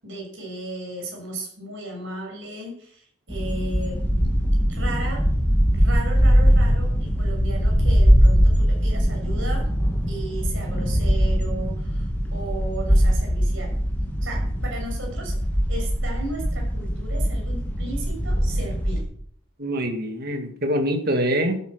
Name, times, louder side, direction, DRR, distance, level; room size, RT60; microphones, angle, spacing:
voice 1, 0.0-4.0 4.7-5.2 5.7-9.7 10.1-13.7 14.2-15.4 15.7-19.0, right 2 dB, 60° right, 0 dB, 6.6 m, -35 dB
sound 1, 3.3-19.0, equal, 10° left, 2.7 m, -21 dB
voice 2, 19.6-21.6, equal, 45° right, 5 dB, 2.1 m, -24 dB
13.0 x 9.5 x 6.5 m, 0.63 s
head